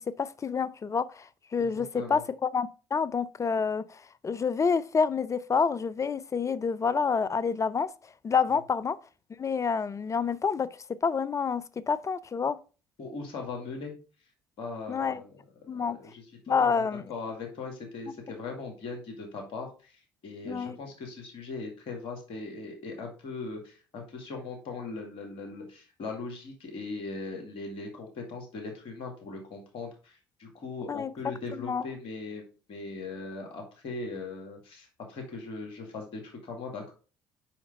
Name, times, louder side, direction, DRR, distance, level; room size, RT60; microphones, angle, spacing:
voice 1, 0.2-7.9 8.2-9.0 9.4-10.7 11.0-12.6 14.9-15.2 15.7-16.0 16.5-17.0 20.5-20.8 30.9-31.1 31.6-31.8, left 5 dB, 30° left, 0.5 m, -28 dB
voice 2, 1.7-2.2 8.5-8.6 13.0-13.9 14.6-16.3 16.6-36.9, left 3 dB, 60° left, 2.1 m, -39 dB
5.8 x 5.1 x 5.1 m
hypercardioid pair, 55°, 10 cm